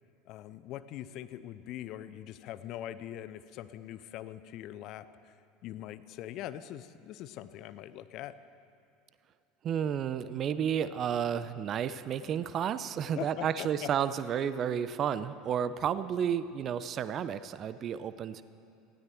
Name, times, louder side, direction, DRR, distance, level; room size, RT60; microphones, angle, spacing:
voice 1, 0.3-5.3 5.6-8.3 13.2-13.9, left 12 dB, 50° left, 14 dB, 0.6 m, -42 dB
voice 2, 9.6-18.4, right 8 dB, 40° right, 14 dB, 0.7 m, -31 dB
19.0 x 16.0 x 4.5 m, 2.7 s
figure-of-eight pair, 70°, 0 cm